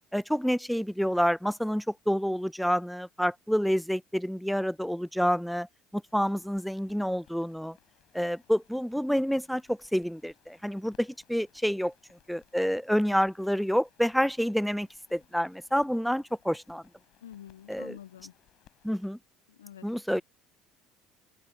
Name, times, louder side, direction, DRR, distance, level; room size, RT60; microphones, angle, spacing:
voice 1, 0.1-5.7 5.9-7.8 8.1-11.9 12.3-16.8 17.7-18.0 18.8-19.2 19.8-20.2, equal, ahead, 0.4 m, -28 dB
sound 1, 6.1-19.1, left 15 dB, 60° left, 3.8 m, -65 dB
voice 2, 17.2-18.3 19.6-19.9, left 10 dB, 80° left, 0.3 m, -47 dB
open air
hypercardioid pair, 60°, 0 cm